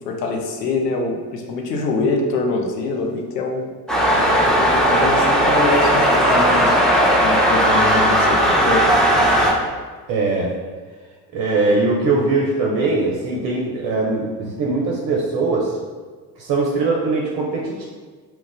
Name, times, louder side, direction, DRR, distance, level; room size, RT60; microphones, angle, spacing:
voice 1, 0.0-3.7 4.0-6.8 7.2-9.0, left 3 dB, 80° left, 2 dB, 0.6 m, -24 dB
sound 1, 3.9-9.5, equal, ahead, 0.6 m, -16 dB
voice 2, 10.1-10.5 11.3-15.8 16.4-17.8, right 3 dB, 45° right, -2 dB, 0.6 m, -21 dB
2.4 x 2.2 x 3.8 m, 1.4 s
figure-of-eight pair, 55°, 48 cm